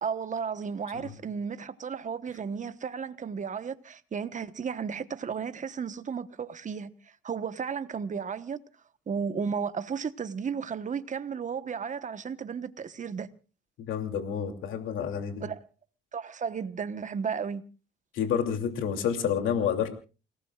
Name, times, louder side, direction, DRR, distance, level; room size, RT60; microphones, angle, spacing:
voice 1, 0.0-6.9 7.2-8.6 9.1-13.3 15.4-15.6 16.1-17.6, right 6 dB, 40° right, 1.2 m, -34 dB
voice 2, 13.8-15.4 18.1-19.9, left 8 dB, 85° left, 2.8 m, -29 dB
29.5 x 18.0 x 2.4 m
cardioid pair, 90°, 20 cm